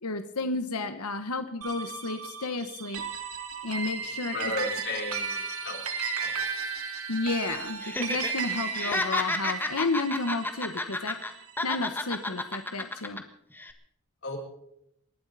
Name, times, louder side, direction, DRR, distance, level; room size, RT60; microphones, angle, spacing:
voice 1, 0.0-3.0 3.6-4.5 7.1-11.2 11.6-13.2, left 3 dB, 85° left, 8 dB, 1.2 m, -32 dB
sound 1, 1.6-12.2, right 5 dB, 80° right, 2.8 m, -35 dB
voice 2, 4.3-5.8 6.2-6.5 14.2-14.4, left 2 dB, 60° left, -2 dB, 6.5 m, -34 dB
Laughter, 7.8-8.3 8.6-11.3 11.6-13.2 13.6-13.7, left 2 dB, 10° left, 1.5 m, -31 dB
28.0 x 12.0 x 4.1 m, 0.75 s
head